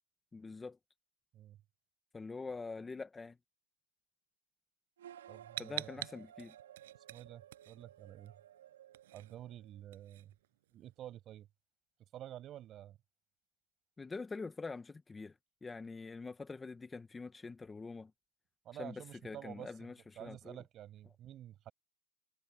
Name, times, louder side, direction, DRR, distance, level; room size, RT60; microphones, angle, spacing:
voice 1, 0.3-0.8 2.1-3.4 5.6-6.5 14.0-15.3 15.6-18.1 18.8-20.6, left 4 dB, 10° left, 1.5 m, -45 dB
sound 1, 5.0-9.8, right 11 dB, 80° right, 3.2 m, -56 dB
voice 2, 5.3-5.9 7.1-8.3 9.1-10.3 10.7-11.5 12.1-13.0 18.6-19.7 20.2-21.7, right 12 dB, 25° right, 8.0 m, -50 dB
sound 2, 5.6-8.3 8.6-10.9, right 15 dB, 60° right, 7.4 m, -46 dB
supercardioid pair, 155°, 0 cm